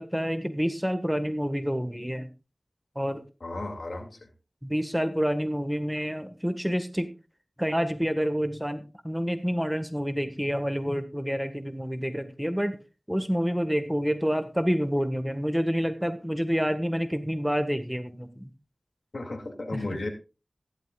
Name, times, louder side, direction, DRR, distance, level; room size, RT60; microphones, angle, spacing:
voice 1, 0.0-2.3 2.9-3.2 4.6-7.1 7.6-12.8 13.1-18.5 19.7-19.8, equal, 5° right, 9 dB, 1.6 m, -28 dB
voice 2, 3.4-4.2 19.1-20.1, left 2 dB, 75° left, 5 dB, 2.5 m, -34 dB
15.0 x 12.0 x 2.4 m, 0.31 s
wide cardioid pair, 40°, 0 cm